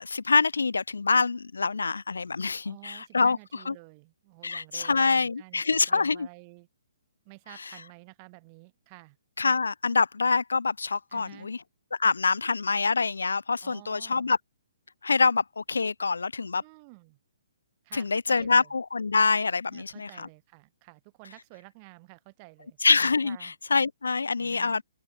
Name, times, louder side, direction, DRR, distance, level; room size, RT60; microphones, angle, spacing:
voice 1, 0.0-3.4 3.7-3.8 4.4-6.3 9.4-11.6 11.9-14.4 15.0-16.6 17.9-20.3 22.8-24.8, left 4 dB, 80° left, 0.5 m, -25 dB
voice 2, 2.6-6.7 7.3-9.2 11.1-11.5 13.6-14.3 16.6-17.2 17.8-18.7 19.7-22.8 23.2-23.6 24.4-24.8, right 30 dB, 35° right, 1.8 m, -51 dB
open air
figure-of-eight pair, 135°, 0 cm